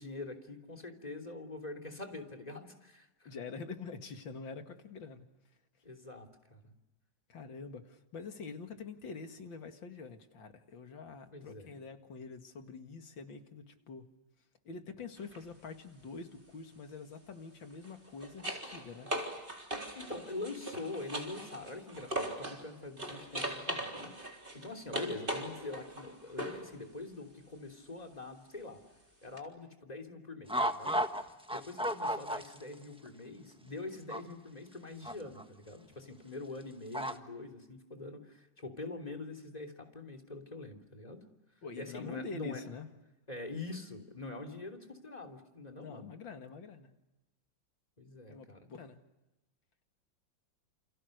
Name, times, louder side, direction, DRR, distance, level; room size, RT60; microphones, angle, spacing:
voice 1, 0.0-3.3 5.8-6.7 11.3-11.8 19.9-28.8 29.2-31.2 31.5-41.2 41.8-42.6 43.3-46.1 48.0-48.7, left 2 dB, 20° left, 3 dB, 3.2 m, -44 dB
voice 2, 3.2-5.2 7.3-14.1 14.6-19.1 41.6-42.9 45.8-46.9 48.3-49.0, left 4 dB, 80° left, 6 dB, 2.8 m, -46 dB
sound 1, 15.2-15.4 17.7-22.6 23.0-26.7 29.4-29.5, right 1 dB, 25° right, 4.2 m, -40 dB
sound 2, 30.5-31.2 31.5-32.7 33.1-33.2 34.1-34.2 35.1-35.4 36.9-37.1, equal, 5° right, 1.1 m, -32 dB
29.0 x 28.5 x 6.6 m, 1.0 s
omnidirectional pair, 2.1 m